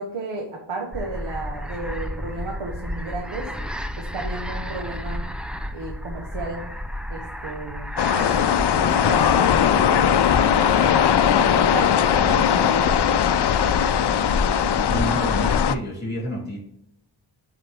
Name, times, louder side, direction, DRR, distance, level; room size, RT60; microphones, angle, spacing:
voice 1, 0.0-3.5 4.0-5.2 5.7-6.7 7.1-10.1 10.4-10.7 11.3-13.1, right 2 dB, 90° right, 1 dB, 1.1 m, -33 dB
sound 1, 0.9-15.7, equal, ahead, 0.4 m, -32 dB
sound 2, 8.0-15.8, left 9 dB, 60° left, 0.5 m, -19 dB
voice 2, 14.9-16.6, right 1 dB, 20° left, -3 dB, 2.6 m, -29 dB
7.6 x 4.0 x 3.4 m, 0.76 s
wide cardioid pair, 110°, 46 cm